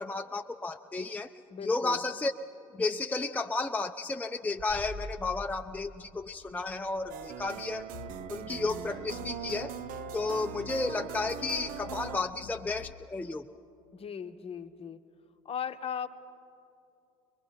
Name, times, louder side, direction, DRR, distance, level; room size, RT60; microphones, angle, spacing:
voice 1, 0.0-1.3 1.6-2.3 2.7-7.9 8.3-9.7 10.1-13.4, left 3 dB, 10° left, 5 dB, 0.5 m, -32 dB
voice 2, 1.5-2.0 13.9-15.0 15.4-16.1, left 7 dB, 35° left, 10 dB, 0.9 m, -37 dB
sound 1, 4.6-10.1, equal, 25° right, 1.4 m, -48 dB
sound 2, 7.1-12.2, right 10 dB, 55° right, 0.6 m, -41 dB
sound 3, 7.9-12.9, left 9 dB, 55° left, 0.6 m, -48 dB
23.0 x 21.5 x 5.7 m, 2.7 s
hypercardioid pair, 65°, 17 cm